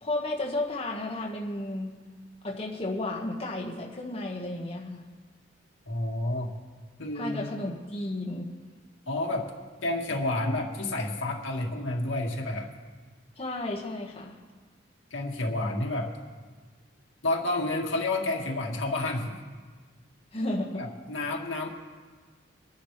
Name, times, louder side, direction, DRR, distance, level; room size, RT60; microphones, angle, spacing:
voice 1, 0.0-2.0 2.4-5.0 7.1-8.5 13.4-14.4 20.3-20.9, left 2 dB, 30° left, -3 dB, 1.6 m, -33 dB
voice 2, 5.9-6.5 7.0-7.5 9.1-9.5 9.8-12.7 15.1-16.1 17.2-19.4 20.8-21.7, left 2 dB, 80° left, 0 dB, 2.0 m, -30 dB
24.5 x 10.0 x 3.3 m, 1.5 s
head